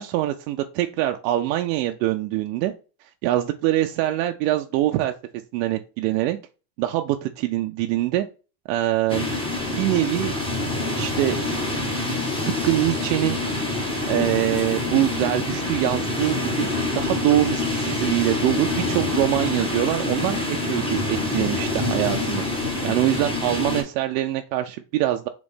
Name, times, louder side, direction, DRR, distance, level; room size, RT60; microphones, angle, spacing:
voice 1, 0.0-2.7 3.2-5.1 5.5-6.4 6.8-8.2 8.7-9.3 9.5-10.3 11.0-11.4 12.4-13.4 14.1-25.3, right 14 dB, 75° right, 5 dB, 0.6 m, -24 dB
sound 1, 9.1-23.8, left 2 dB, 10° left, 1.2 m, -26 dB
4.0 x 3.1 x 3.4 m, 0.34 s
supercardioid pair, 125°, 49 cm